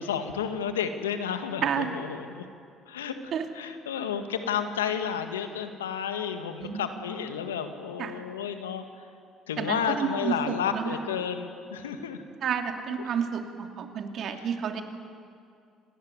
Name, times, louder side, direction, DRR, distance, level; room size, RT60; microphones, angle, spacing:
voice 1, 0.0-2.5 2.9-8.8 9.5-12.2, left 7 dB, 90° left, 7 dB, 1.8 m, -31 dB
voice 2, 1.6-1.9 3.3-3.4 6.6-6.9 8.0-8.2 9.6-11.0 12.4-14.8, right 7 dB, 60° right, 5 dB, 2.7 m, -30 dB
27.0 x 19.0 x 9.6 m, 2.4 s
hypercardioid pair, 55°, 0 cm